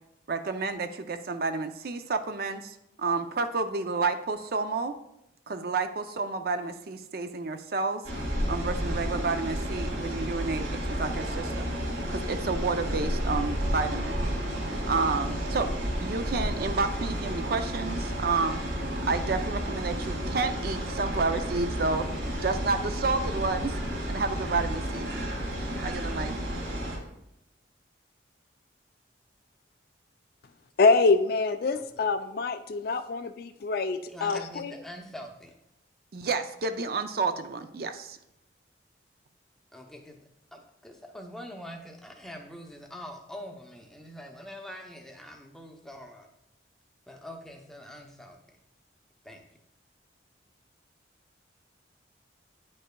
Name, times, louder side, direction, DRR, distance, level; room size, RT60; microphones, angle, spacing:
voice 1, 0.3-4.9 5.5-8.0 8.5-11.6 12.1-14.2 14.9-15.7 16.0-18.6 19.1-22.1 22.4-23.8 24.1-25.1 25.8-26.4 36.1-38.2, right 4 dB, 50° right, 8 dB, 0.4 m, -30 dB
sound 1, 8.0-27.0, equal, 75° right, 2.1 m, -31 dB
voice 2, 30.8-34.7, left 4 dB, 50° left, 9 dB, 0.4 m, -25 dB
voice 3, 34.1-35.6 39.7-40.2 40.5-46.3 47.1-48.4 49.2-49.4, equal, ahead, 2 dB, 0.6 m, -44 dB
9.7 x 5.3 x 2.2 m, 0.84 s
head